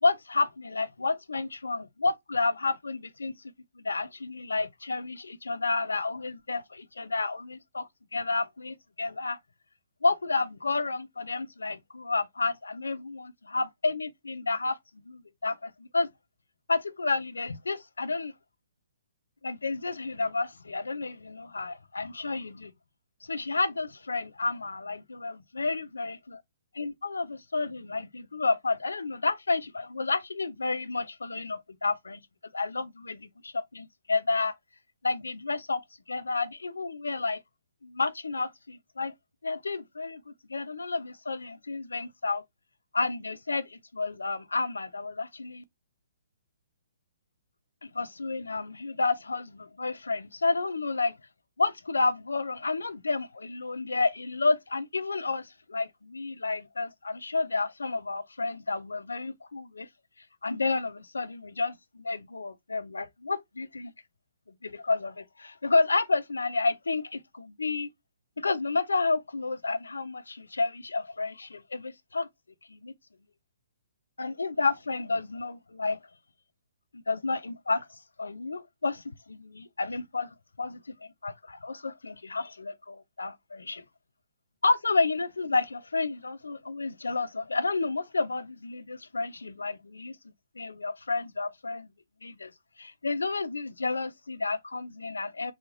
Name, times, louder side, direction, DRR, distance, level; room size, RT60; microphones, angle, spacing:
voice 1, 0.0-3.3 3.8-9.4 10.0-14.8 15.1-16.1 16.7-18.3 19.4-22.7 23.2-26.4 26.7-32.2 32.5-34.5 35.0-35.8 36.1-37.4 37.8-39.1 39.4-42.4 42.9-45.6 47.8-51.1 51.6-59.9 60.4-63.9 64.6-67.9 68.4-72.3 72.7-72.9 74.2-76.0 76.9-80.3 80.6-83.8 84.6-90.2 90.6-91.9 92.2-92.5 92.8-95.5, left 3 dB, 90° left, 0.4 m, -30 dB
2.4 x 2.4 x 3.1 m
hypercardioid pair, 140°, 0 cm